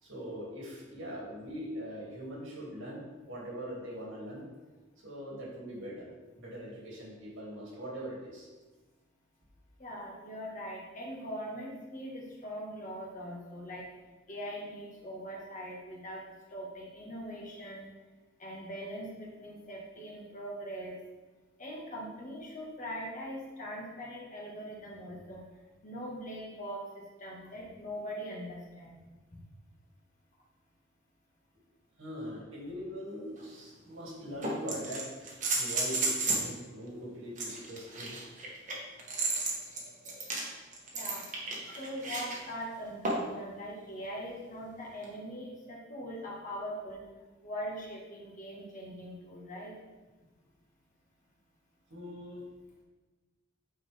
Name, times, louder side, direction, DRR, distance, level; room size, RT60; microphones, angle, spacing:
voice 1, 0.0-4.5 5.0-8.5 32.0-38.2 51.9-52.4, equal, 85° right, -4 dB, 2.3 m, -42 dB
voice 2, 9.8-13.9 14.3-16.2 16.5-17.9 18.4-21.0 21.6-29.0 29.3-29.4 40.9-41.3 41.8-47.0 47.4-49.7, equal, 40° left, -3 dB, 1.7 m, -41 dB
sound 1, 33.4-33.5 34.4-36.5 37.4-42.4 43.0-43.4 45.0-45.1, right 3 dB, 40° right, 1.3 m, -33 dB
8.7 x 4.5 x 3.5 m, 1.2 s
head